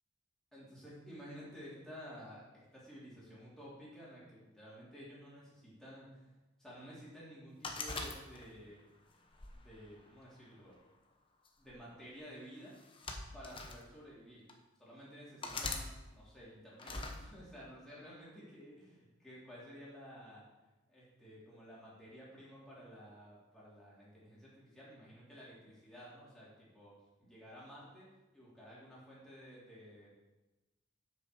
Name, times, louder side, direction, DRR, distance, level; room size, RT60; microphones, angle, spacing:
voice 1, 0.5-8.8 9.5-10.8 11.6-12.8 13.3-14.5 14.8-20.4 20.9-28.1 28.3-30.1, equal, 5° left, -8 dB, 3.4 m, -53 dB
sound 1, 7.6-8.7 9.3-10.5 11.5-11.7 12.7-13.8 14.5-14.6 15.4-15.9 16.8-17.2, left 3 dB, 25° left, 1.0 m, -42 dB
7.9 x 6.2 x 6.4 m, 1.1 s
head